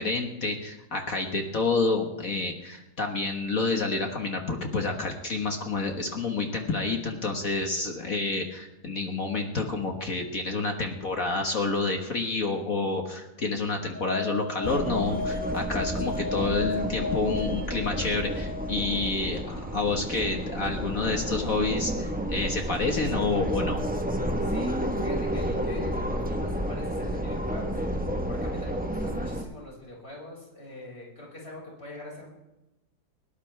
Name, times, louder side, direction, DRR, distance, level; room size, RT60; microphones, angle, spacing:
voice 1, 0.0-23.8, left 3 dB, 45° left, 3 dB, 1.8 m, -29 dB
sound 1, 13.9-19.0, left 3 dB, 45° right, 3.6 m, -34 dB
sound 2, 14.6-29.4, equal, 5° right, 0.7 m, -31 dB
voice 2, 24.4-27.7 28.3-32.3, left 1 dB, 30° left, -3 dB, 6.1 m, -42 dB
21.0 x 18.0 x 3.4 m, 0.96 s
omnidirectional pair, 2.1 m